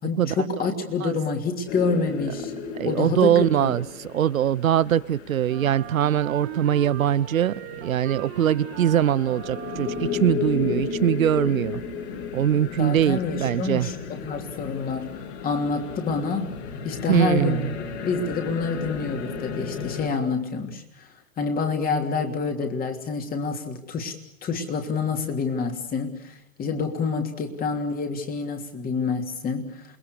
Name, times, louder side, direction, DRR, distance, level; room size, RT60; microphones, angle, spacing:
voice 1, 0.0-2.5 2.8-3.7 12.8-16.5 16.8-17.6 18.0-21.1 21.4-30.0, left 4 dB, 20° left, 4 dB, 3.2 m, -27 dB
sound 1, 1.7-20.1, left 5 dB, 50° left, 5.8 m, -34 dB
voice 2, 2.8-3.8 4.1-11.8 12.3-13.9 17.1-17.7, right 10 dB, 75° right, 20 dB, 0.9 m, -22 dB
Wind instrument woodwind instrument, 5.4-10.5, right 15 dB, 40° right, 1.8 m, -39 dB
28.5 x 21.5 x 6.8 m, 0.82 s
hypercardioid pair, 115°, 42 cm